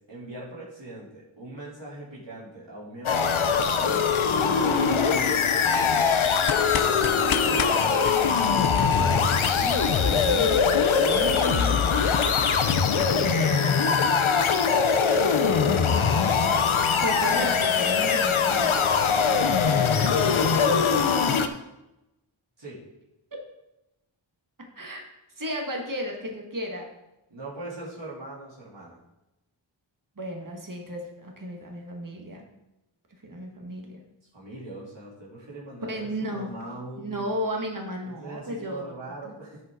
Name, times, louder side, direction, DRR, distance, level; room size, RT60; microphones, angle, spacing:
voice 1, 0.1-4.1 4.6-6.2 20.5-21.5 22.6-22.8 27.3-29.0 34.3-37.3 38.0-39.6, right 2 dB, 65° right, -8 dB, 3.5 m, -40 dB
sound 1, 3.1-21.5, left 6 dB, 85° left, 0.7 m, -22 dB
sound 2, 6.4-13.3, left 8 dB, 50° left, 0.5 m, -33 dB
voice 2, 8.7-11.8 13.2-14.0 14.3-16.1 17.0-18.9 24.8-25.0 25.4-26.9 30.2-32.5 33.2-34.0 35.8-36.5 37.0-39.3, equal, 45° right, 1 dB, 1.9 m, -35 dB
13.5 x 5.4 x 3.9 m, 0.94 s
wide cardioid pair, 45°, 47 cm